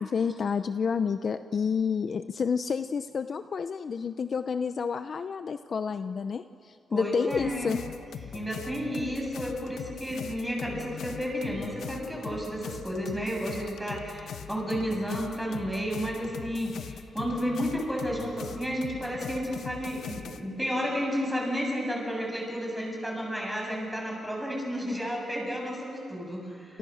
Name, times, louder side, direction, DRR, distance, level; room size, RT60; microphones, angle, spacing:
voice 1, 0.0-7.8, left 6 dB, 45° left, 10 dB, 0.7 m, -29 dB
voice 2, 6.9-7.8 8.3-26.8, equal, ahead, 0 dB, 7.8 m, -32 dB
sound 1, 7.3-20.4, left 7 dB, 80° left, 1.3 m, -41 dB
30.0 x 28.5 x 6.5 m, 2.6 s
wide cardioid pair, 140°, 0 cm